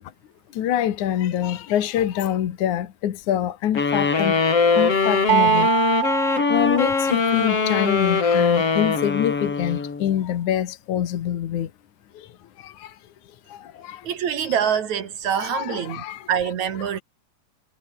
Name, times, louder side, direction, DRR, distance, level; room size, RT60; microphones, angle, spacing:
voice 1, 0.6-4.3 4.8-5.7 6.5-11.7 12.6-12.7 13.8-14.0 14.6-14.7 15.3-16.2, left 11 dB, 75° left, 3.0 m, -25 dB
sound 1, 3.8-10.2, left 4 dB, 50° left, 5.1 m, -21 dB
sound 2, 5.3-7.4, right 14 dB, 90° right, 2.6 m, -23 dB
voice 2, 14.0-17.0, right 8 dB, 65° right, 3.7 m, -25 dB
omnidirectional pair, 3.5 m